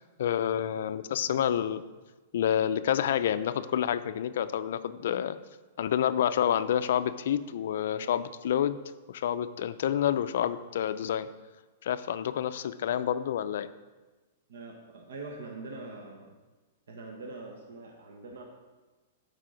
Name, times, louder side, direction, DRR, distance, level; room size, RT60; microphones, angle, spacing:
voice 1, 0.0-1.8 2.3-5.4 5.8-8.8 9.1-11.3 11.8-13.7, left 9 dB, 60° left, 12 dB, 0.4 m, -28 dB
voice 2, 14.5-16.4 16.9-18.4, right 3 dB, 75° right, 1 dB, 1.3 m, -43 dB
12.0 x 4.9 x 5.1 m, 1.2 s
supercardioid pair, 175°, 0 cm